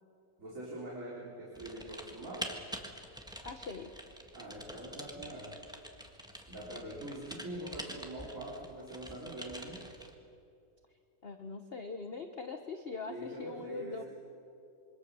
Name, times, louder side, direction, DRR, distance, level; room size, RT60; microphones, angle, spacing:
voice 1, 0.4-2.6 4.3-5.6 6.3-9.8 13.1-14.0, right 1 dB, 45° right, -6 dB, 4.3 m, -44 dB
Typing, 1.5-10.1, equal, ahead, 1.5 m, -46 dB
voice 2, 3.4-3.9 11.2-14.0, left 4 dB, 40° left, 6 dB, 1.1 m, -42 dB
26.0 x 24.0 x 6.9 m, 2.6 s
omnidirectional pair, 2.0 m